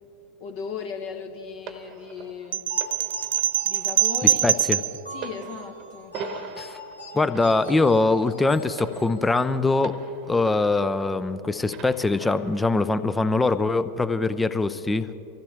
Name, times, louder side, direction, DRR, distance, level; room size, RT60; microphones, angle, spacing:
voice 1, 0.4-2.7 3.6-4.5 5.1-6.1, left 6 dB, 45° left, 4 dB, 1.3 m, -36 dB
sound 1, 1.7-11.3 11.7-12.7 13.5-13.7, right 5 dB, 35° right, 1.1 m, -42 dB
sound 2, 2.5-5.0, right 12 dB, 60° right, 0.4 m, -23 dB
sound 3, 2.7-9.6, left 1 dB, 80° left, 1.8 m, -42 dB
voice 2, 4.2-4.8 6.6-6.8 7.1-9.9 10.3-15.2, left 3 dB, 10° left, 13 dB, 0.6 m, -23 dB
24.5 x 15.5 x 3.5 m, 2.9 s
figure-of-eight pair, 90°, 0 cm